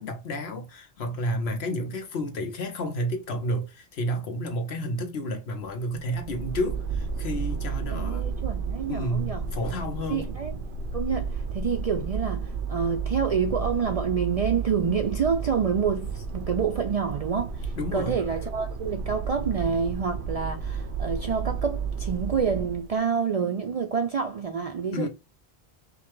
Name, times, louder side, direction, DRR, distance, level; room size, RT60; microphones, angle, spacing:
voice 1, 0.0-8.3 8.9-10.3 17.8-18.1 24.9-25.1, equal, 75° left, 1.1 m, -31 dB
sound 1, 5.7-22.9, right 5 dB, 85° right, 0.9 m, -32 dB
voice 2, 7.9-9.4 10.1-10.5 10.9-25.1, right 6 dB, 55° right, 0.4 m, -28 dB
5.2 x 2.2 x 3.1 m
omnidirectional pair, 1.1 m